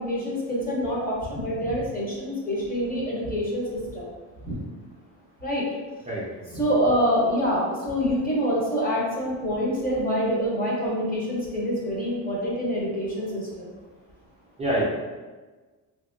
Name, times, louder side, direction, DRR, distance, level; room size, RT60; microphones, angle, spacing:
voice 1, 0.0-4.1 4.4-4.6 5.4-5.6 6.5-13.7, equal, 25° left, -5 dB, 0.8 m, -26 dB
voice 2, 6.1-6.5 14.6-14.8, right 1 dB, 20° right, -8 dB, 0.5 m, -26 dB
2.7 x 2.7 x 2.6 m, 1.3 s
cardioid pair, 145°, 35 cm